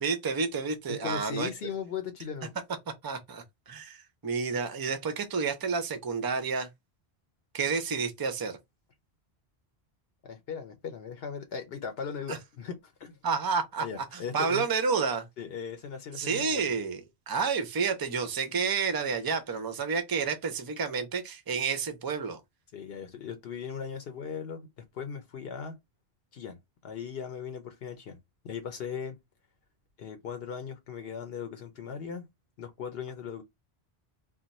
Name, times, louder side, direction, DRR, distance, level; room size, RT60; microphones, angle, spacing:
voice 1, 0.0-1.5 3.0-6.7 7.5-8.6 12.3-12.4 13.2-13.8 14.1-15.3 16.2-22.4, right 5 dB, 35° right, 0.3 m, -30 dB
voice 2, 0.9-2.5 10.2-13.2 13.8-14.7 15.4-16.8 22.7-24.7 24.9-25.8 26.3-26.6 26.8-28.2 28.4-29.2 30.0-32.3 32.6-33.4, left 7 dB, 70° left, 0.8 m, -38 dB
2.4 x 2.2 x 3.9 m
omnidirectional pair, 1.1 m